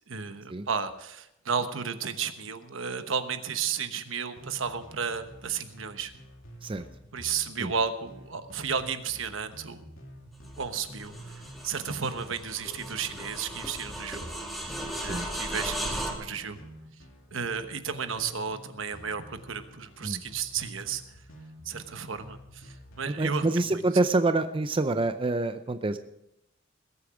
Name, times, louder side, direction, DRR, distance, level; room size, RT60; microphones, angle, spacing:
voice 1, 0.1-6.1 7.1-9.8 10.6-14.3 14.6-16.6 17.3-21.0 21.6-23.5 23.7-23.8, right 6 dB, 75° right, 9 dB, 1.1 m, -33 dB
sound 1, 4.4-23.2, equal, 85° left, 2.6 m, -49 dB
sound 2, 10.4-16.1, equal, ahead, 2.4 m, -37 dB
voice 2, 23.1-26.0, right 2 dB, 25° right, 9 dB, 0.5 m, -27 dB
20.5 x 8.6 x 5.0 m, 0.84 s
head